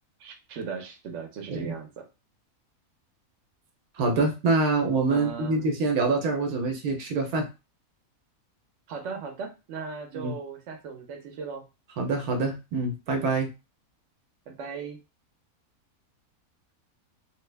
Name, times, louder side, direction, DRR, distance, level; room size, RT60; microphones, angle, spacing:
voice 1, 0.2-2.1 5.1-5.7 8.9-11.7 14.5-15.0, right 5 dB, 60° right, 3 dB, 1.0 m, -37 dB
voice 2, 4.0-7.5 10.1-10.3 12.0-13.5, right 3 dB, 85° right, 3 dB, 1.2 m, -25 dB
3.1 x 2.2 x 3.2 m, 0.28 s
omnidirectional pair, 1.5 m